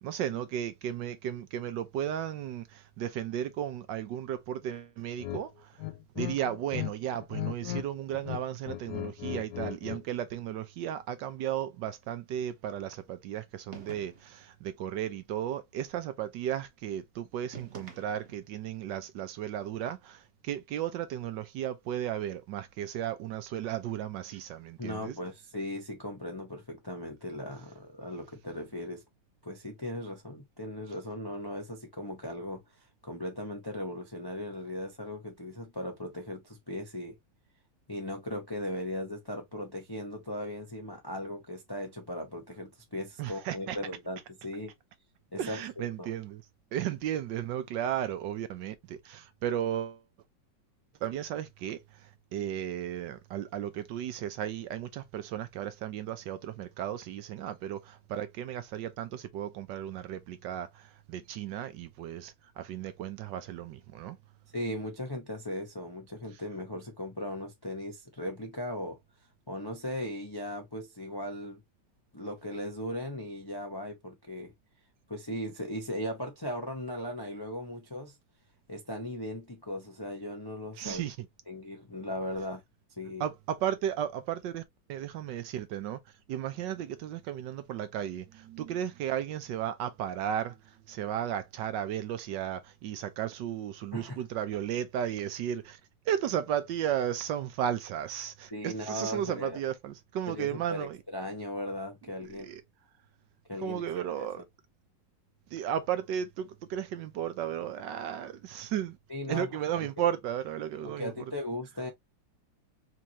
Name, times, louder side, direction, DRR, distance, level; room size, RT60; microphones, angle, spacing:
voice 1, 0.0-5.7 6.2-25.2 43.2-43.8 45.4-46.4 46.7-50.0 51.0-51.8 52.3-64.2 80.8-81.3 83.2-84.6 84.9-86.0 86.3-90.6 90.9-95.8 96.1-101.0 102.4-102.6 103.6-104.4 105.5-109.0 109.3-111.3, right 10 dB, 75° right, 1.3 m, -34 dB
sound 1, 5.2-5.4 5.8-6.9 7.2-7.9 8.1-10.0, left 15 dB, 70° left, 1.2 m, -36 dB
sound 2, 13.7-14.5 17.5-18.6, right 5 dB, 45° right, 1.1 m, -47 dB
voice 2, 24.8-29.0 29.4-32.6 33.0-37.2 37.9-44.7 45.3-46.1 64.5-69.0 69.5-71.6 72.1-74.5 75.1-78.2 78.7-81.0 81.5-82.6 83.0-83.3 93.9-94.2 98.5-99.6 100.3-102.5 103.5-104.3 109.1-110.0 110.8-111.9, left 1 dB, 25° left, 0.5 m, -38 dB
4.5 x 2.6 x 2.9 m
omnidirectional pair, 2.1 m